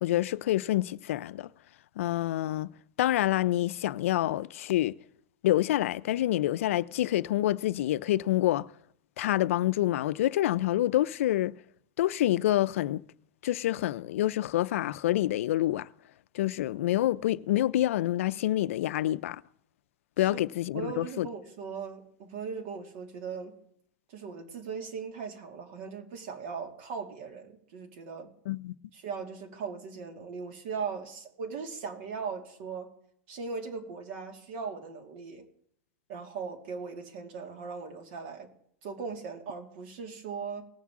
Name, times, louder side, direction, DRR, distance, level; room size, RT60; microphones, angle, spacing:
voice 1, 0.0-1.5 2.0-2.7 3.0-5.0 5.4-8.7 9.2-11.6 12.0-13.0 13.4-15.9 16.3-19.4 20.2-21.3 28.5-28.7, left 14 dB, 85° left, 0.4 m, -27 dB
voice 2, 20.7-23.6 24.1-28.3 28.9-32.9 33.3-35.4 36.1-38.5 38.8-40.6, right 5 dB, 65° right, 2.4 m, -39 dB
19.0 x 7.3 x 3.6 m
supercardioid pair, 130°, 7 cm